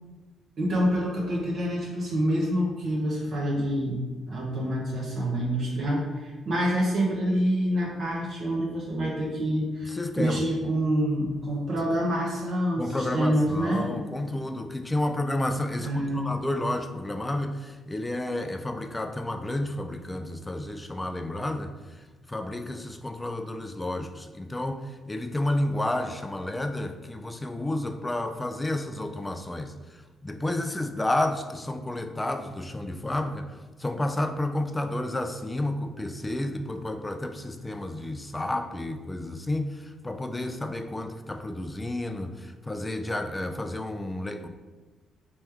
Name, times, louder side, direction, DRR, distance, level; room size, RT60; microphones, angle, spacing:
voice 1, 0.6-4.0 4.3-13.9 15.8-16.3, equal, 55° right, -4 dB, 0.8 m, -27 dB
voice 2, 9.8-10.4 12.8-44.5, left 1 dB, 15° left, 7 dB, 0.3 m, -31 dB
3.4 x 3.1 x 3.3 m, 1.2 s
cardioid pair, 90°, 0 cm